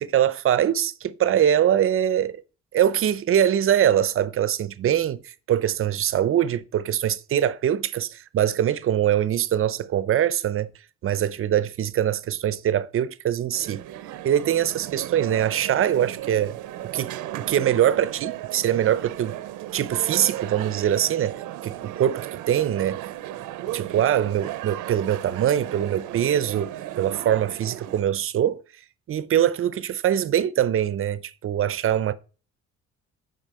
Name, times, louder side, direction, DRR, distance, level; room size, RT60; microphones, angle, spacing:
voice 1, 0.0-2.4 2.7-10.7 11.0-13.8 14.2-16.6 16.9-19.4 19.7-23.0 23.7-26.7 27.0-28.6 29.1-32.1, right 10 dB, 45° right, 0.7 m, -23 dB
sound 1, 13.5-28.0, right 14 dB, 85° right, 0.7 m, -35 dB
9.0 x 5.6 x 4.2 m
cardioid pair, 125°, 30 cm